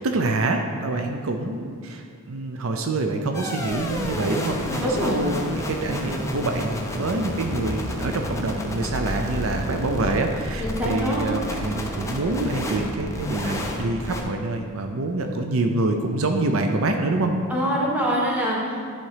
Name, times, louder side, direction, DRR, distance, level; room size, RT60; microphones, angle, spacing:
voice 1, 0.0-17.3, right 2 dB, 70° right, 4 dB, 0.6 m, -26 dB
sound 1, 3.3-14.2, left 1 dB, 15° left, 0.7 m, -31 dB
voice 2, 4.8-5.2 10.6-11.3 17.5-18.9, equal, 10° right, -5 dB, 1.5 m, -24 dB
10.5 x 4.2 x 4.9 m, 2.1 s
head